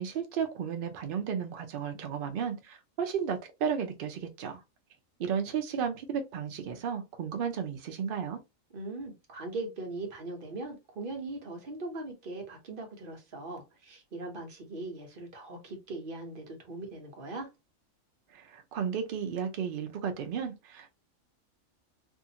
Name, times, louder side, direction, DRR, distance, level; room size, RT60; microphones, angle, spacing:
voice 1, 0.0-4.6 5.2-8.4 18.3-20.9, right 7 dB, 90° right, 0.4 m, -33 dB
voice 2, 8.7-17.5, right 2 dB, 45° right, 0.9 m, -40 dB
2.7 x 2.4 x 2.7 m
omnidirectional pair, 1.5 m